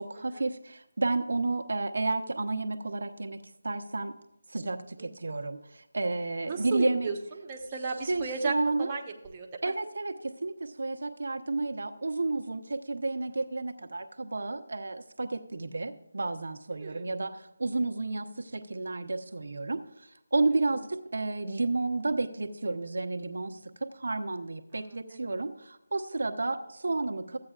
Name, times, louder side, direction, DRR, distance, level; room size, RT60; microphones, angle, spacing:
voice 1, 0.0-4.1 4.5-7.1 8.1-8.9 9.6-27.4, right 3 dB, 70° right, 5 dB, 0.9 m, -31 dB
voice 2, 5.0-5.3 6.4-9.7 16.7-17.1 20.7-20.8 24.7-25.4 26.4-26.5, right 4 dB, 20° right, 0 dB, 1.1 m, -36 dB
14.5 x 8.6 x 2.4 m, 0.86 s
figure-of-eight pair, 165°, 0 cm